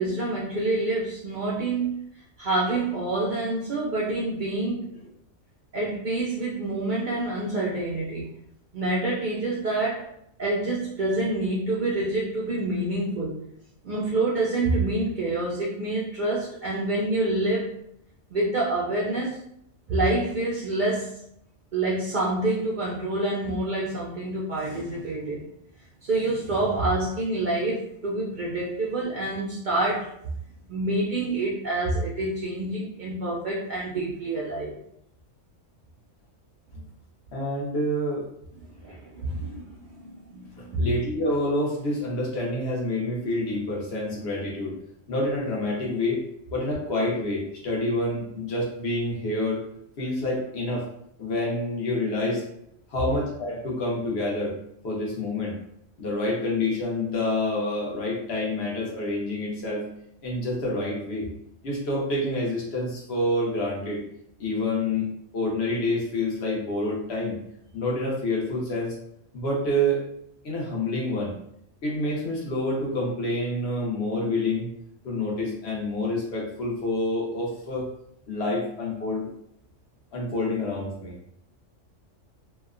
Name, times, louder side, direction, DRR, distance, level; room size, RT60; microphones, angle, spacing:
voice 1, 0.0-2.0 2.4-5.0 5.7-8.3 8.7-10.1 10.4-13.4 13.8-17.7 18.3-19.4 19.9-21.2 21.7-25.4 26.0-30.1 30.7-34.8 38.8-39.6 39.9-40.9, right 2 dB, 65° right, -5 dB, 0.5 m, -27 dB
voice 2, 37.3-38.3 40.8-44.7 45.1-46.2 46.5-49.6 50.0-50.9 51.2-52.4 52.9-54.5 54.8-55.6 56.0-59.8 60.2-61.3 61.6-64.0 64.4-67.4 67.7-68.9 69.3-70.0 70.4-71.3 71.8-74.7 75.0-77.9 78.3-79.3 80.1-81.2, left 1 dB, 60° left, -3 dB, 1.1 m, -27 dB
2.8 x 2.1 x 2.4 m, 0.73 s
omnidirectional pair, 1.3 m